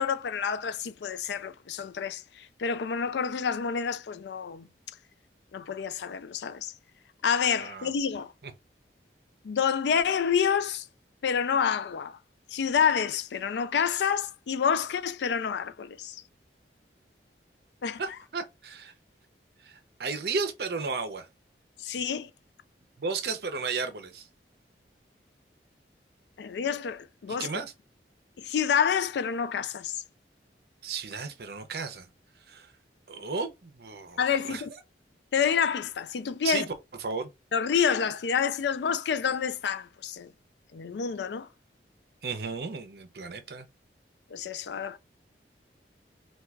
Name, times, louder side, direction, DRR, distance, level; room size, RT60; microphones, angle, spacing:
voice 1, 0.0-4.7 5.5-6.7 7.2-8.3 9.4-10.8 11.2-12.2 12.5-16.2 17.8-18.0 21.8-22.3 26.4-27.5 28.4-30.0 34.2-34.7 35.3-36.7 37.5-40.3 40.7-41.5 44.3-45.0, left 7 dB, 75° left, 0.4 m, -28 dB
voice 2, 7.6-7.9 8.4-8.5 18.0-18.9 19.6-21.3 23.0-24.3 27.3-27.7 30.8-32.1 32.5-32.7 33.1-34.2 34.5-34.6 36.4-36.7 37.0-37.3 42.2-43.7, right 4 dB, 60° right, 0.6 m, -34 dB
4.4 x 2.3 x 2.3 m
head